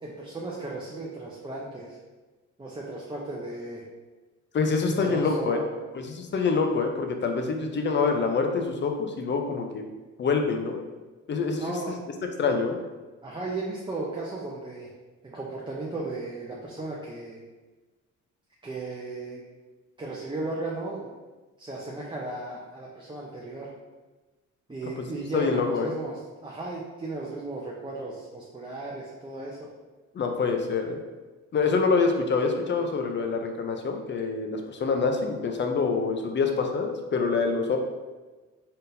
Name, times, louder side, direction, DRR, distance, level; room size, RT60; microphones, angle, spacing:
voice 1, 0.0-2.0 2.6-3.8 5.0-5.7 11.6-12.0 13.2-14.9 15.2-17.4 18.6-19.4 20.0-21.1 21.6-23.7 24.7-29.6, right 2 dB, 15° right, -4 dB, 0.6 m, -35 dB
voice 2, 4.5-5.6 5.9-9.8 10.2-10.8 11.3-11.8 12.4-12.8 25.0-25.9 30.1-31.0 31.5-37.8, left 4 dB, 40° left, 4 dB, 0.6 m, -26 dB
4.2 x 3.6 x 2.6 m, 1.2 s
cardioid pair, 90°, 30 cm